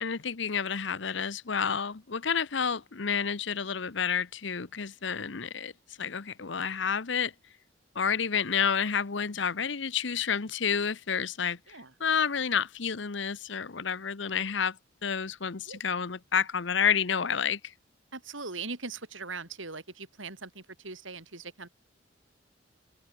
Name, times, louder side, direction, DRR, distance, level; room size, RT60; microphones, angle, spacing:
voice 1, 0.0-5.7 6.0-7.3 7.9-11.6 12.0-14.8 15.0-17.6, left 6 dB, 70° left, 0.9 m, -29 dB
voice 2, 18.1-21.7, right 4 dB, 80° right, 5.2 m, -40 dB
open air
head